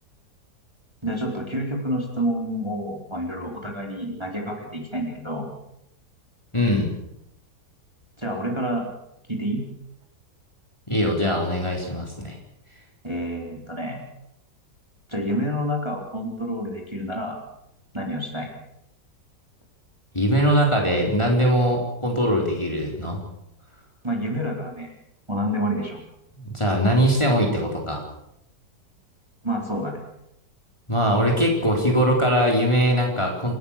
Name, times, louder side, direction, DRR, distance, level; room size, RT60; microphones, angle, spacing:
voice 1, 1.0-5.5 8.2-8.9 9.3-9.6 13.0-14.0 15.1-17.4 17.9-18.5 24.0-24.9 25.3-26.0 29.4-30.0, equal, 15° right, 0 dB, 4.2 m, -28 dB
voice 2, 6.5-6.9 10.9-12.4 20.1-23.2 26.3-28.0 30.9-33.5, equal, 15° left, 0 dB, 4.2 m, -21 dB
28.5 x 14.0 x 7.4 m, 0.80 s
omnidirectional pair, 1.8 m